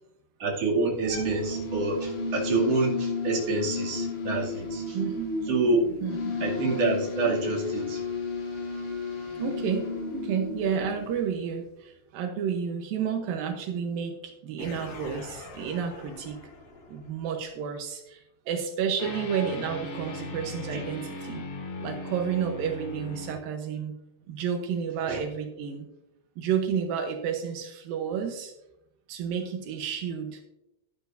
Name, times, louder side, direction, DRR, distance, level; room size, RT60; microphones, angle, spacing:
voice 1, 0.4-5.0 5.5-6.0 6.4-8.0 20.7-20.8 25.1-25.2, right 3 dB, 40° right, -4 dB, 2.8 m, -27 dB
sound 1, 0.9-11.4, left 3 dB, 65° left, 5.8 m, -33 dB
voice 2, 4.9-5.3 6.0-6.3 9.4-16.4 16.9-21.4 21.8-24.0 24.3-25.9 26.4-28.5 29.1-30.4, right 7 dB, 85° right, 3 dB, 2.0 m, -31 dB
sound 2, 14.6-17.4 19.0-23.3, left 2 dB, 85° left, 1.2 m, -39 dB
13.5 x 11.0 x 2.6 m, 0.84 s
omnidirectional pair, 5.5 m